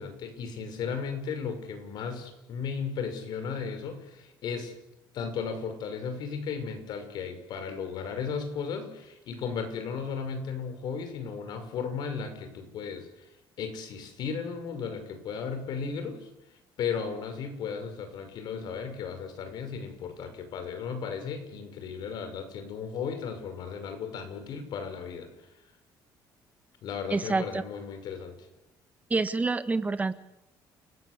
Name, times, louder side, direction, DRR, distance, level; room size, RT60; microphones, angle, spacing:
voice 1, 0.0-4.7 5.1-13.3 13.6-16.3 16.8-25.3 26.8-28.4, left 6 dB, 65° left, 8 dB, 6.1 m, -35 dB
voice 2, 27.1-27.6 29.1-30.1, right 3 dB, 20° right, 11 dB, 1.7 m, -27 dB
29.5 x 21.0 x 8.4 m, 0.92 s
cardioid pair, 120°, 8 cm